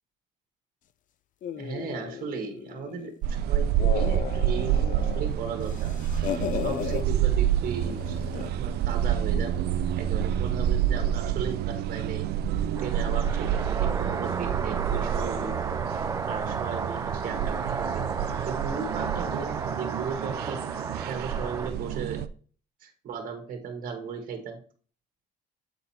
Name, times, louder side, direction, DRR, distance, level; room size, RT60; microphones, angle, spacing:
sound 1, 1.4-3.2 3.6-5.3 5.6-7.0 7.8-8.6, left 9 dB, 50° left, 0.5 m, -35 dB
voice 1, 1.6-5.9 6.5-9.7 10.0-12.3 12.8-15.7 16.2-18.1 18.4-22.2 22.8-24.6, right 6 dB, 55° right, 5 dB, 1.6 m, -36 dB
sound 2, 3.2-22.3, right 10 dB, 70° right, 0.5 m, -28 dB
sound 3, 12.7-21.7, right 4 dB, 20° right, 0.5 m, -33 dB
7.9 x 4.0 x 4.3 m, 0.43 s
cardioid pair, 110°, 17 cm